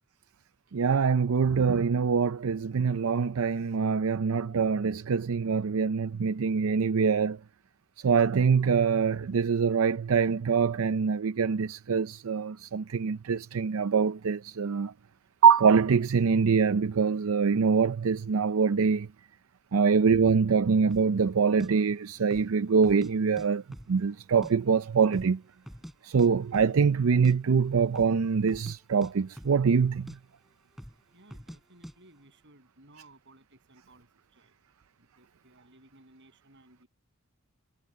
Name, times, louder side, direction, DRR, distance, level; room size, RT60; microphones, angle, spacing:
voice 1, 0.7-7.4 8.0-14.9 15.4-19.1 19.7-23.6 23.9-25.4 26.0-30.2, right 6 dB, 80° right, 0.5 m, -24 dB
sound 1, 20.9-21.1 21.6-21.7 22.2-22.5 22.8-23.5 23.7-24.5 24.8-24.9 25.1-25.9 26.2-26.3 26.5-26.8 27.1-27.4 27.9-28.2 28.5-28.8 29.0-29.8 30.1-30.2 30.8-31.0 31.3-31.6 31.8-32.0, equal, ahead, 5.3 m, -45 dB
voice 2, 31.1-34.6 35.0-36.9, right 2 dB, 60° right, 7.8 m, -58 dB
head